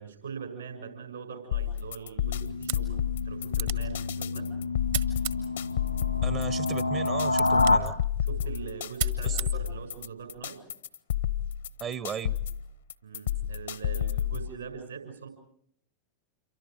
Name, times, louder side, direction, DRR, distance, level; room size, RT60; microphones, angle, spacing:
voice 1, 0.0-3.0 3.2-4.5 8.2-10.6 13.0-15.3, right 6 dB, 75° right, 5 dB, 6.7 m, -41 dB
sound 1, 1.5-14.5, left 11 dB, 65° left, 0.9 m, -31 dB
sound 2, 2.2-7.8, left 3 dB, 90° left, 1.8 m, -28 dB
sound 3, 2.5-10.5, right 11 dB, 60° right, 1.5 m, -40 dB
voice 2, 6.2-7.9 9.2-9.4 11.8-12.4, right 8 dB, 30° right, 19 dB, 0.8 m, -36 dB
28.0 x 24.5 x 5.1 m, 0.70 s
figure-of-eight pair, 90°, 0 cm